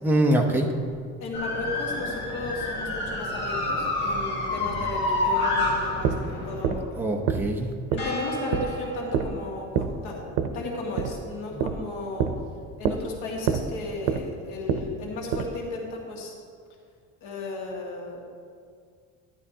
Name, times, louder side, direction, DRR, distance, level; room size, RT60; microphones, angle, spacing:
voice 1, 0.0-0.7 7.0-7.7 11.5-11.6, right 1 dB, 5° right, 0 dB, 0.7 m, -23 dB
voice 2, 1.2-7.2 7.9-12.4 12.8-16.4 17.2-18.2, left 2 dB, 80° left, -2 dB, 1.9 m, -35 dB
sound 1, 1.3-6.8 8.0-9.6, left 2 dB, 35° left, 1.5 m, -29 dB
sound 2, 5.6-15.6, right 7 dB, 90° right, 0.7 m, -29 dB
12.0 x 10.5 x 2.8 m, 2.1 s
cardioid pair, 170°, 31 cm